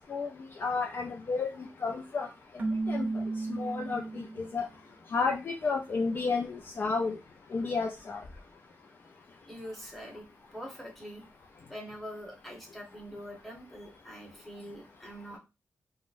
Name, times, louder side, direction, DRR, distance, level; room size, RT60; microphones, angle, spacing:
voice 1, 0.6-1.5 1.8-2.3 2.9-3.1 3.5-4.3 4.5-4.7 5.1-7.2 7.5-8.2, left 4 dB, 40° left, 2 dB, 0.4 m, -31 dB
Keyboard (musical), 2.6-4.6, right 3 dB, 30° right, 0.5 m, -33 dB
voice 2, 9.4-10.3 10.5-11.2 11.7-15.4, equal, 5° left, -2 dB, 0.9 m, -44 dB
3.6 x 2.1 x 2.5 m, 0.26 s
wide cardioid pair, 155°, 5 cm